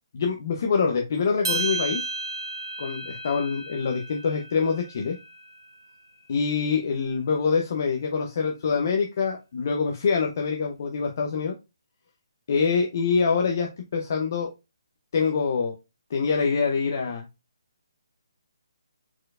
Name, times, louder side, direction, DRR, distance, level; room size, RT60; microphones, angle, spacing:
voice 1, 0.1-2.0 2.8-5.2 6.3-11.5 12.5-14.5 15.1-15.7 16.1-17.3, left 5 dB, 35° left, 3 dB, 0.7 m, -25 dB
sound 1, 1.4-5.9, right 3 dB, 55° right, 1.3 m, -33 dB
4.4 x 4.3 x 2.4 m, 0.24 s
hypercardioid pair, 175°, 2 cm